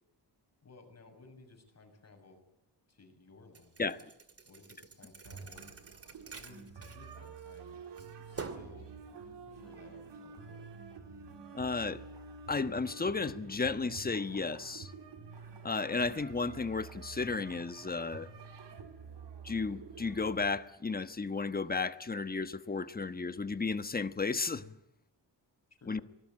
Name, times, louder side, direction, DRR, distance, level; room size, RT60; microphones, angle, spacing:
voice 1, 0.6-2.4 2.9-3.9 4.4-5.7 6.3-8.9 9.4-10.7 25.8-26.0, left 3 dB, 40° left, 7.0 m, -57 dB
Thump thud, 3.5-7.6 8.0-8.8, right 4 dB, 35° right, 2.5 m, -47 dB
sound 1, 5.2-20.5, right 5 dB, 85° right, 3.6 m, -49 dB
voice 2, 11.5-12.0 12.5-14.9 15.6-18.3 19.4-24.8 25.9-26.0, left 4 dB, 20° left, 1.2 m, -33 dB
24.5 x 20.0 x 9.7 m
wide cardioid pair, 140°, 41 cm